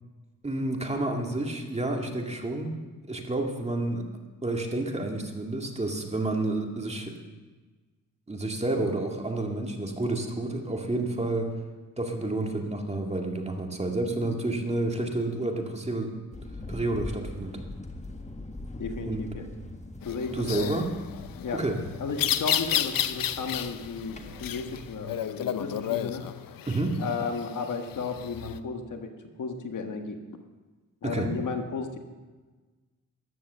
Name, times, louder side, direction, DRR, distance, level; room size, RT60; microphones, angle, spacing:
voice 1, 0.4-2.8 3.1-4.0 4.4-7.1 8.3-11.5 12.0-16.2 16.7-17.6 19.1-19.3 20.3-20.9 21.5-21.8 26.7-27.0 31.0-31.3, right 2 dB, 20° right, 2 dB, 2.1 m, -30 dB
sound 1, 16.3-25.0, left 2 dB, 20° left, 1.6 m, -42 dB
voice 2, 18.8-19.4 20.0-20.7 21.4-21.6 22.0-26.2 27.0-29.1 29.4-30.2 31.0-32.0, left 4 dB, 65° left, 5 dB, 1.5 m, -34 dB
sound 2, 20.0-28.6, left 10 dB, 80° left, 0.7 m, -32 dB
14.0 x 11.0 x 6.7 m, 1.3 s
cardioid pair, 100°, 33 cm